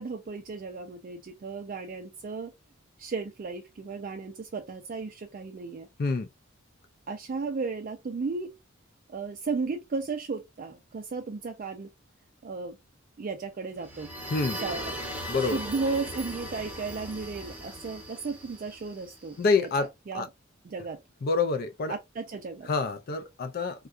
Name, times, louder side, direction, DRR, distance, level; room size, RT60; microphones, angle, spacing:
voice 1, 0.0-2.5 3.0-5.9 7.1-8.5 9.1-11.9 12.4-12.8 13.2-14.1 14.5-15.0 15.3-20.3 20.6-21.0 21.9-22.7, right 4 dB, 40° right, 0.3 m, -35 dB
sound 1, 13.8-19.5, equal, 10° right, 0.7 m, -38 dB
voice 2, 15.3-15.6 19.4-19.9 20.1-20.3 21.2-22.0 22.7-23.9, left 4 dB, 45° left, 0.4 m, -27 dB
3.6 x 2.2 x 2.4 m
head